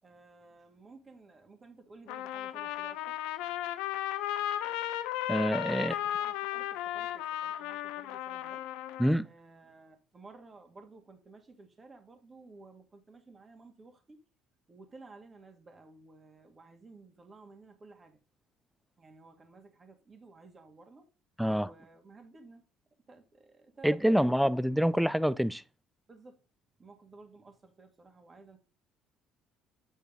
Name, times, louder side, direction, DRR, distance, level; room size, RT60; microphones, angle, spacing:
voice 1, 0.0-3.2 5.7-8.7 9.2-14.3 14.7-18.2 19.0-21.1 21.5-22.6 23.0-24.5 26.1-26.5 26.8-28.6, right 3 dB, 25° right, 2.3 m, -54 dB
Trumpet, 2.1-9.2, left 12 dB, 80° left, 0.7 m, -35 dB
voice 2, 5.3-5.9 9.0-9.3 21.4-21.7 23.8-25.6, equal, ahead, 0.5 m, -26 dB
9.2 x 4.4 x 5.3 m
supercardioid pair, 95°, 0 cm